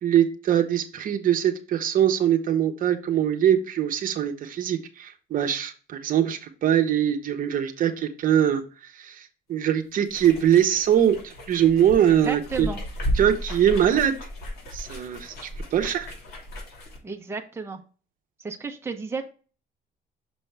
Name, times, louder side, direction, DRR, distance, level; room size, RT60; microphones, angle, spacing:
voice 1, 0.0-12.7 13.1-14.1 14.7-16.1, right 10 dB, 55° right, 5 dB, 0.9 m, -22 dB
sound 1, 10.1-17.0, equal, 70° left, 2.8 m, -34 dB
voice 2, 12.1-12.8 17.0-17.8 18.4-19.2, right 4 dB, 15° right, 3 dB, 1.0 m, -33 dB
6.3 x 5.3 x 3.3 m, 0.37 s
cardioid pair, 110°, 17 cm